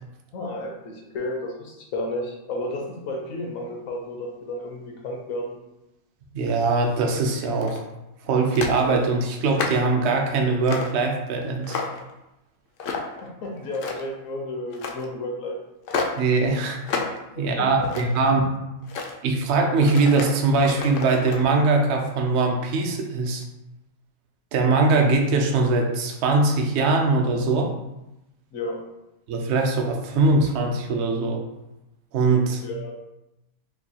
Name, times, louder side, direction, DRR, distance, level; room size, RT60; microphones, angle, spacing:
voice 1, 0.3-5.6 13.2-15.6 17.3-17.9 18.3-18.4 28.5-28.8 32.6-33.0, left 1 dB, 70° left, 0 dB, 1.1 m, -32 dB
voice 2, 6.3-7.8 8.2-11.8 16.2-16.8 17.4-18.4 19.2-23.4 24.5-27.7 29.3-31.5 32.1-32.6, right 3 dB, 60° right, 2 dB, 0.8 m, -21 dB
sound 1, 7.4-7.9 8.5-8.8 9.3-9.9 10.6-11.0 11.4-12.1 12.8-13.2 13.6-14.2 14.7-15.0 15.9-16.2 16.8-17.2 17.6-18.3 18.8-19.1 19.8-21.4, left 4 dB, 85° left, 0.4 m, -31 dB
4.5 x 2.3 x 2.8 m, 0.92 s
omnidirectional pair, 1.5 m